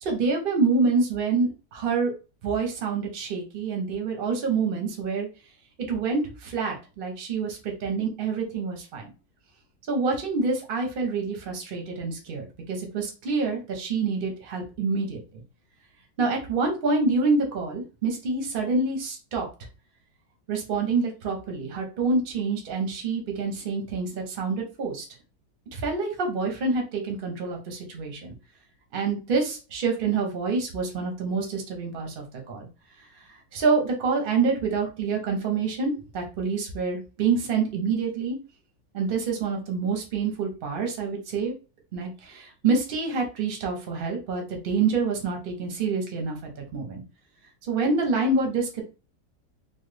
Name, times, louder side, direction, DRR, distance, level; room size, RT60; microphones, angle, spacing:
voice 1, 0.0-2.1 2.4-5.3 5.9-9.1 9.9-15.4 16.2-19.5 20.5-25.1 25.7-28.3 28.9-32.7 33.2-33.3 33.5-38.4 38.9-41.5 41.9-47.0 47.6-48.8, right 4 dB, 50° right, 1 dB, 0.6 m, -27 dB
3.1 x 2.1 x 3.2 m, 0.33 s
omnidirectional pair, 1.9 m